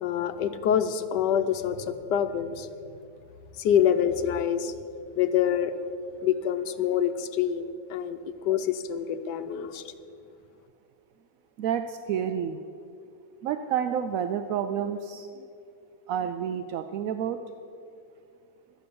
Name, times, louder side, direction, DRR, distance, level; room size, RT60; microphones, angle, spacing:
voice 1, 0.0-2.7 3.6-4.7 5.2-5.8 6.2-9.9, left 9 dB, 80° left, 9 dB, 1.3 m, -26 dB
voice 2, 11.6-12.6 13.4-15.5 16.1-17.4, right 8 dB, 70° right, 8 dB, 0.8 m, -29 dB
12.5 x 8.2 x 6.9 m, 2.4 s
omnidirectional pair, 1.9 m